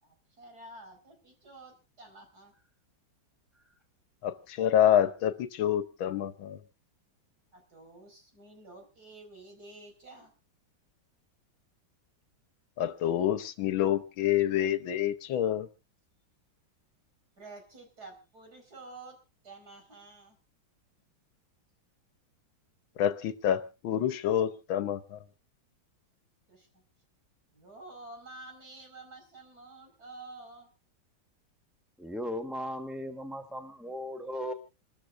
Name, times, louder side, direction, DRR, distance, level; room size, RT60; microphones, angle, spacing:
voice 1, 0.0-2.5 7.5-10.3 17.4-20.4 26.5-26.8 27.5-30.7, right 2 dB, 50° right, 3 dB, 5.4 m, -50 dB
voice 2, 4.2-6.6 12.8-15.7 23.0-25.2, left 10 dB, 80° left, 12 dB, 1.7 m, -27 dB
voice 3, 32.0-34.5, equal, ahead, 6 dB, 0.9 m, -37 dB
28.0 x 13.5 x 2.5 m, 0.30 s
omnidirectional pair, 2.1 m